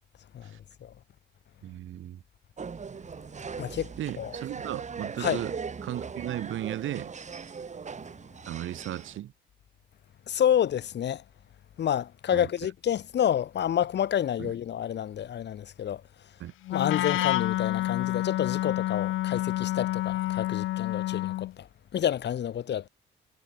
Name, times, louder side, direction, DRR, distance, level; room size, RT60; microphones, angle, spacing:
voice 1, 0.3-0.9 3.6-3.9 4.2-4.4 5.2-5.4 10.3-11.2 11.8-16.0 16.7-22.9, left 10 dB, 60° left, 1.8 m, -29 dB
voice 2, 1.6-2.2 4.0-5.5 5.8-7.1 8.5-9.3 12.3-12.5 14.4-14.5 16.4-16.5, right 12 dB, 80° right, 6.9 m, -35 dB
sound 1, 2.6-9.2, right 5 dB, 35° right, 2.7 m, -39 dB
Wind instrument woodwind instrument, 16.7-21.5, left 15 dB, 80° left, 0.7 m, -28 dB
cardioid pair, 90°, 20 cm